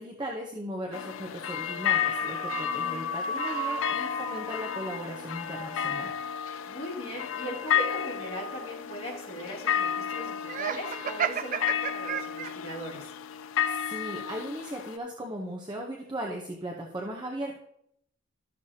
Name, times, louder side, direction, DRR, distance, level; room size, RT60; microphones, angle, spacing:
voice 1, 0.0-6.1 13.6-17.6, right 1 dB, 20° right, 0 dB, 0.8 m, -37 dB
sound 1, 0.9-15.0, left 9 dB, 70° left, 0.4 m, -32 dB
sound 2, 1.8-6.3, left 1 dB, 15° left, 1.1 m, -35 dB
voice 2, 6.6-13.1, equal, 30° left, -6 dB, 2.9 m, -39 dB
Laughter, 10.5-12.8, right 7 dB, 40° right, 0.3 m, -32 dB
13.0 x 6.5 x 2.8 m, 0.74 s
head